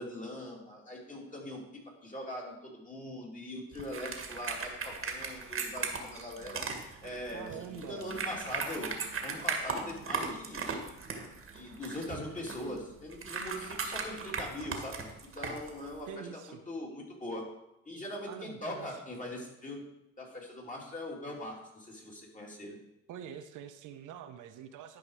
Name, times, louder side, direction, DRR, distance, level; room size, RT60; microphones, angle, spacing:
voice 1, 0.0-1.6 2.0-6.6 7.0-8.9 9.2-10.8 11.5-15.1 15.3-17.4 17.8-19.8 20.2-22.8, left 1 dB, 25° left, -2 dB, 3.0 m, -41 dB
sound 1, 3.7-16.1, right 4 dB, 45° right, 1.7 m, -38 dB
voice 2, 7.3-8.1 16.1-16.6 18.3-19.0 23.1-25.0, right 8 dB, 85° right, 9 dB, 0.8 m, -45 dB
11.5 x 5.1 x 4.8 m, 0.89 s
cardioid pair, 90°, 30 cm